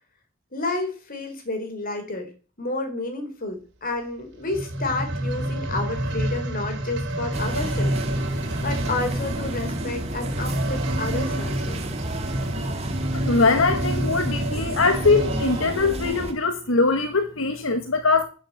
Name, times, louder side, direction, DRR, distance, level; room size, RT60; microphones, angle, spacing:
voice 1, 0.5-2.3 2.6-11.8, left 2 dB, 45° left, 4.0 m, -31 dB
sound 1, 4.4-15.7 16.4-16.5, right 1 dB, 60° right, 3.2 m, -28 dB
sound 2, 7.3-16.3, right 1 dB, 30° right, 1.9 m, -31 dB
voice 2, 13.1-18.3, left 3 dB, 75° left, 1.4 m, -22 dB
12.0 x 7.3 x 8.9 m
head